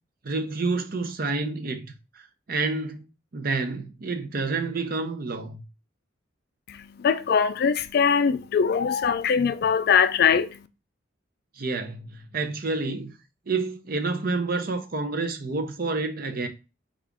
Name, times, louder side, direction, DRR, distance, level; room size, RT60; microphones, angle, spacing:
voice 1, 0.2-2.2 2.5-3.0 3.3-5.6 11.6-13.1 13.5-16.5, right 3 dB, 45° right, 0.6 m, -29 dB
voice 2, 6.7-10.5, left 6 dB, 50° left, 0.3 m, -22 dB
4.8 x 2.4 x 3.5 m
head